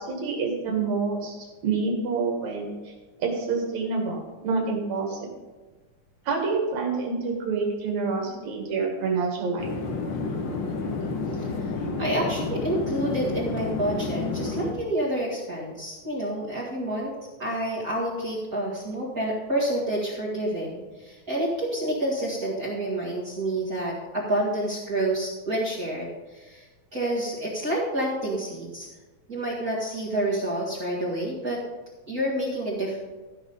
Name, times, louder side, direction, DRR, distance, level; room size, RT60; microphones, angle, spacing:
voice 1, 0.0-1.4 1.6-2.9 3.2-5.3 6.2-9.7, right 4 dB, 70° right, 0 dB, 3.3 m, -27 dB
sound 1, 9.6-14.7, left 3 dB, 60° left, 1.3 m, -30 dB
voice 2, 11.4-11.7 12.0-17.1 17.4-26.6 26.9-28.9 29.3-31.6 32.1-33.0, right 1 dB, 35° right, -6 dB, 2.0 m, -28 dB
14.0 x 6.2 x 5.3 m, 1.2 s
omnidirectional pair, 3.3 m